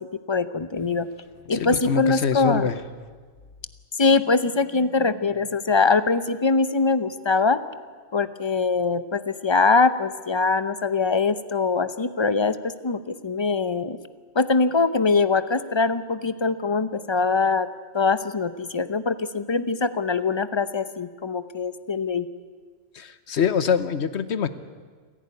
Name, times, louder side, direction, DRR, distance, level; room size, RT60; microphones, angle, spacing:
voice 1, 0.3-1.1 1.5-2.7 4.0-7.6 8.1-12.6 12.8-14.0 14.3-17.7 17.9-22.3, left 4 dB, 30° left, 13 dB, 0.6 m, -22 dB
voice 2, 1.5-2.8 22.9-24.5, left 7 dB, 60° left, 14 dB, 1.2 m, -24 dB
28.5 x 11.5 x 9.6 m, 1.5 s
omnidirectional pair, 1.3 m